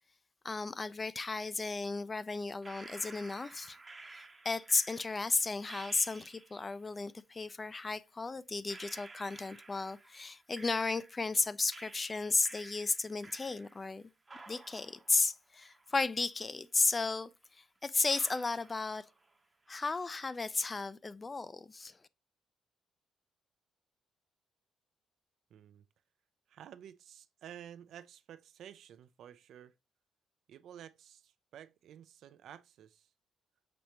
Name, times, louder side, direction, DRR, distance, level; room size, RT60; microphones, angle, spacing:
voice 1, 0.4-3.8 4.1-14.1 14.5-17.3 17.6-19.0 19.7-22.0, left 3 dB, 25° left, 0.3 m, -34 dB
sound 1, 2.6-6.7 7.8-7.9 8.7-11.4 11.7-14.0 14.3-16.3 16.6-16.7 17.4-17.5 18.1-19.4 19.7-20.2, right 3 dB, 25° right, 0.7 m, -53 dB
voice 2, 25.5-25.8 26.5-29.7 30.5-33.1, right 10 dB, 75° right, 0.4 m, -52 dB
6.0 x 3.2 x 2.8 m
cardioid pair, 90°, 0 cm